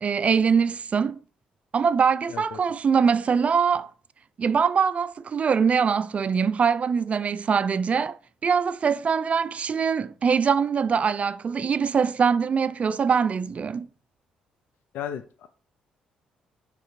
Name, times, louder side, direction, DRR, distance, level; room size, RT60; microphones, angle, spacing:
voice 1, 0.0-1.2 1.7-3.9 4.4-8.2 8.4-13.9, right 6 dB, 40° right, 0.3 m, -23 dB
voice 2, 2.3-2.6 14.9-15.5, left 9 dB, 70° left, 0.3 m, -35 dB
4.9 x 3.3 x 2.7 m
hypercardioid pair, 50°, 3 cm